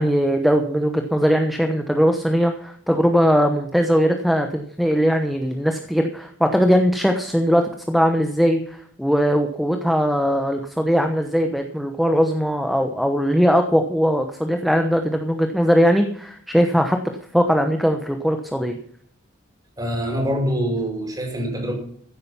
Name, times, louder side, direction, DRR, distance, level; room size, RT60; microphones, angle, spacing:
voice 1, 0.0-17.0 17.3-18.8, equal, ahead, 5 dB, 1.0 m, -20 dB
voice 2, 19.8-21.7, equal, 20° right, 2 dB, 5.5 m, -24 dB
15.5 x 9.0 x 5.7 m, 0.62 s
head